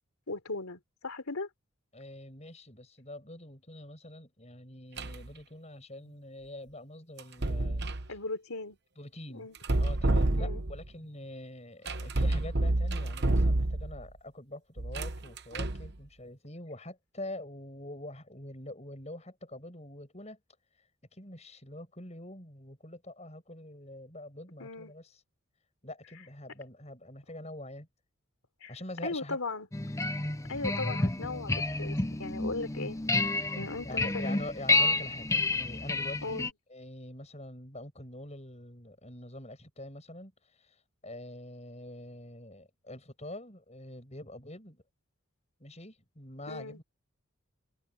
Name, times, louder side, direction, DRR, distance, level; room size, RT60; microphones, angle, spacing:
voice 1, 0.3-1.5 8.1-8.8 9.3-9.6 10.4-10.6 24.6-24.9 28.6-28.7 29.0-29.7 30.5-33.0 33.6-34.4 36.2-36.5 46.5-46.8, left 3 dB, 85° left, 3.5 m, -37 dB
voice 2, 1.9-8.2 9.0-9.5 9.8-20.4 20.7-25.2 25.8-27.9 28.7-29.4 33.8-36.4 36.7-44.8 45.6-46.8, left 1 dB, 30° left, 7.7 m, -45 dB
sound 1, 5.0-5.3 7.2-8.1 9.5-10.9 11.9-14.0 14.8-15.9, right 2 dB, 50° right, 1.1 m, -29 dB
sound 2, 29.7-36.5, left 2 dB, 15° left, 0.6 m, -30 dB
head